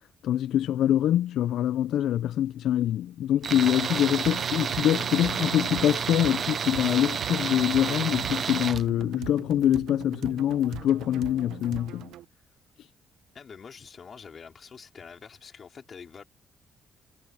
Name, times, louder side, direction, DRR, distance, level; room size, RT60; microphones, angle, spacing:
voice 1, 0.2-12.1, left 11 dB, 80° left, 0.4 m, -25 dB
Tools, 3.4-8.8, right 7 dB, 50° right, 0.4 m, -30 dB
sound 1, 4.2-12.2, right 14 dB, 85° right, 0.9 m, -42 dB
voice 2, 13.3-16.2, left 6 dB, 45° left, 4.0 m, -46 dB
cardioid pair, 90°, 0 cm